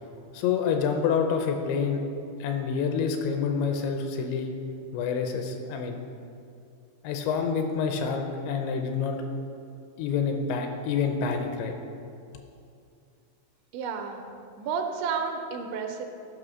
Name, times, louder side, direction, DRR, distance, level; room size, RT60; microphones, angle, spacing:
voice 1, 0.3-2.0 2.4-4.5 4.9-6.0 7.0-9.2 10.0-11.8, left 6 dB, 80° left, 5 dB, 2.7 m, -27 dB
voice 2, 13.7-14.2 14.6-16.1, right 6 dB, 80° right, 4 dB, 2.8 m, -31 dB
11.0 x 5.1 x 6.2 m, 2.5 s
omnidirectional pair, 5.5 m